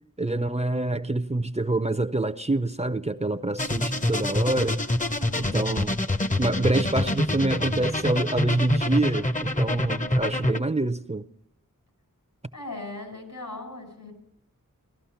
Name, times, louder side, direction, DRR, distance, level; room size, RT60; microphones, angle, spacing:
voice 1, 0.2-4.8 5.4-6.0 6.4-11.2, right 2 dB, 20° right, 0.6 m, -26 dB
sound 1, 3.6-10.6, left 1 dB, 25° left, 0.7 m, -26 dB
voice 2, 5.0-5.7 12.5-14.1, left 2 dB, 80° left, 5.0 m, -39 dB
17.0 x 12.5 x 5.8 m
wide cardioid pair, 60°, 33 cm